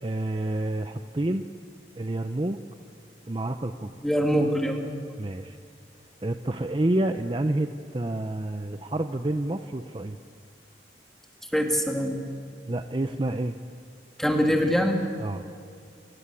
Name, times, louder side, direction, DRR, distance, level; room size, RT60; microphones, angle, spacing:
voice 1, 0.0-1.4 2.0-2.6 3.3-3.9 5.2-5.6 6.2-10.2 12.7-13.6 15.2-15.4, right 1 dB, 30° right, 8 dB, 0.6 m, -28 dB
voice 2, 4.0-4.9 11.5-12.2 14.2-15.0, equal, ahead, 2 dB, 2.4 m, -23 dB
28.5 x 18.0 x 8.5 m, 2.3 s
head